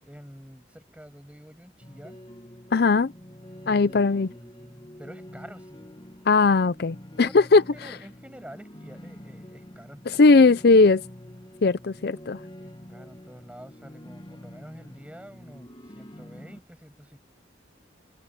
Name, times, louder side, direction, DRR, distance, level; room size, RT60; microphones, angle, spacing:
voice 1, 0.0-2.2 3.6-5.9 7.1-10.4 12.6-17.2, equal, 5° right, 6.5 m, -48 dB
sound 1, 1.8-16.6, equal, 25° left, 1.9 m, -46 dB
voice 2, 2.7-3.1 3.7-4.3 6.3-7.6 10.2-11.0 11.6-12.4, left 3 dB, 55° left, 0.5 m, -18 dB
head